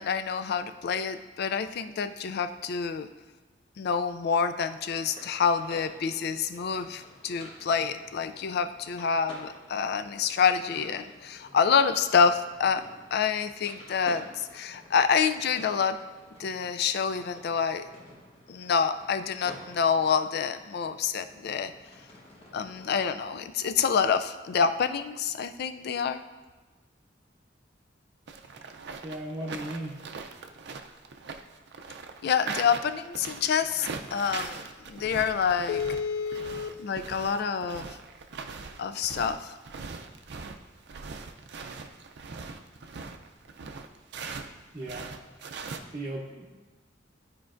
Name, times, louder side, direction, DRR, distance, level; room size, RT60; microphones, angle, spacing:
voice 1, 0.0-3.1 3.8-12.8 13.1-14.3 14.5-16.0 16.4-17.9 18.5-21.7 22.5-26.2 32.2-37.9 38.8-39.5, left 6 dB, 60° left, 10 dB, 0.4 m, -27 dB
sound 1, 5.0-23.1, left 1 dB, 30° left, 1.2 m, -51 dB
sound 2, 28.3-44.5 44.8-45.8, right 4 dB, 65° right, 0.5 m, -41 dB
voice 2, 29.0-30.0 44.7-45.1 45.9-46.4, right 1 dB, 20° right, -6 dB, 0.8 m, -36 dB
11.5 x 4.5 x 2.5 m, 1.2 s
head